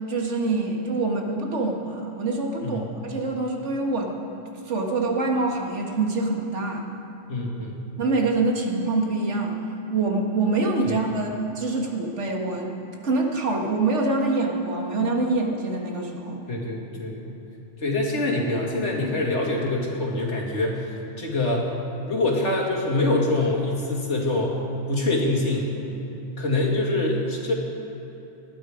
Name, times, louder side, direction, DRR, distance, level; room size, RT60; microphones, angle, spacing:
voice 1, 0.1-4.1 4.7-6.9 8.0-9.6 9.9-11.3 11.6-12.8 13.0-16.4, right 3 dB, 85° right, 1 dB, 2.0 m, -25 dB
voice 2, 7.3-7.8 10.8-11.0 16.5-17.3 17.8-20.9 21.2-21.7 22.1-24.5 24.9-25.7 26.4-27.5, left 2 dB, 80° left, -2 dB, 2.6 m, -25 dB
19.5 x 12.0 x 5.0 m, 2.9 s
omnidirectional pair, 1.2 m